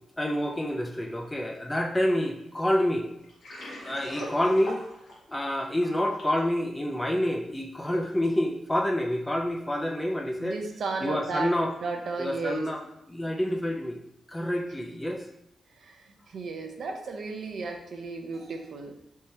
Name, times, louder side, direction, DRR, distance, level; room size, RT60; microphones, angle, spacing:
voice 1, 0.2-3.1 3.8-4.8 5.3-10.6 11.0-11.7 12.2-12.8 13.1-14.0 14.3-15.2, left 1 dB, 10° left, 2 dB, 0.4 m, -28 dB
Water, 3.2-6.4, left 1 dB, 55° left, 1.3 m, -41 dB
voice 2, 10.4-11.5 11.8-12.7 15.8-18.9, right 4 dB, 55° right, 3 dB, 0.6 m, -34 dB
3.6 x 2.8 x 4.1 m, 0.80 s
wide cardioid pair, 175°, 0 cm